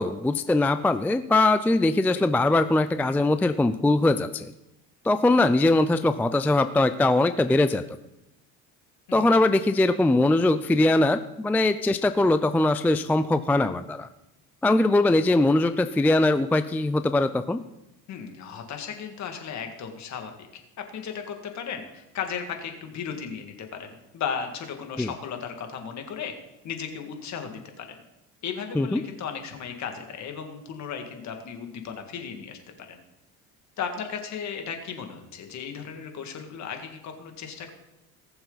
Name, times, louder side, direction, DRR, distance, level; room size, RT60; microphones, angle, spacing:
voice 1, 0.0-4.5 5.0-7.8 9.1-14.1 14.6-17.6 25.0-25.1 28.8-29.0, left 2 dB, 5° left, 11 dB, 0.3 m, -21 dB
voice 2, 18.1-20.3 20.8-26.3 26.6-28.0 28.4-32.6 32.9-33.0 33.8-37.7, left 7 dB, 50° left, 5 dB, 2.1 m, -35 dB
19.5 x 6.9 x 4.0 m, 0.91 s
cardioid pair, 110°, 35 cm